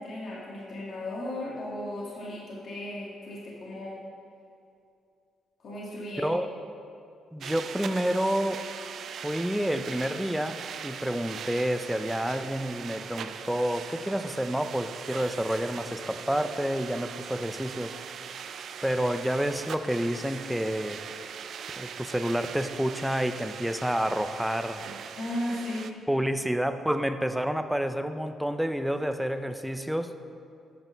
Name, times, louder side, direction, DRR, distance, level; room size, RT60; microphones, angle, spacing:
voice 1, 0.0-4.0 5.6-6.3 25.1-25.9, left 1 dB, 55° left, -5 dB, 2.1 m, -35 dB
voice 2, 6.1-6.5 7.3-8.6 9.2-10.6 10.8-18.0 18.8-21.0 21.8-24.8 26.1-30.1, equal, 5° right, 9 dB, 0.5 m, -29 dB
sound 1, 7.4-25.9, right 7 dB, 65° right, 0.4 m, -40 dB
9.1 x 5.3 x 6.4 m, 2.5 s
cardioid pair, 90°, 0 cm